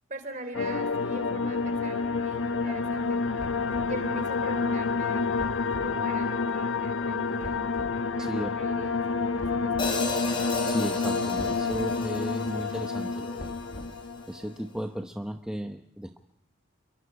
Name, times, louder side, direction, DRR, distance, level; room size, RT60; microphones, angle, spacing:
voice 1, 0.1-3.2 3.9-7.8 8.1-10.2, right 2 dB, 40° right, 8 dB, 3.8 m, -42 dB
sound 1, 0.5-14.5, left 4 dB, 85° left, 0.9 m, -29 dB
sound 2, 3.4-4.0 5.4-6.0 7.4-8.0 9.4-10.0 11.4-11.9 13.4-14.1, equal, 40° left, 2.0 m, -42 dB
voice 2, 8.2-8.5 10.6-13.5 14.3-16.2, equal, 5° right, 3 dB, 0.9 m, -35 dB
Hi-hat, 9.8-14.0, left 2 dB, 25° left, 4.7 m, -35 dB
29.0 x 23.5 x 4.9 m, 0.70 s
head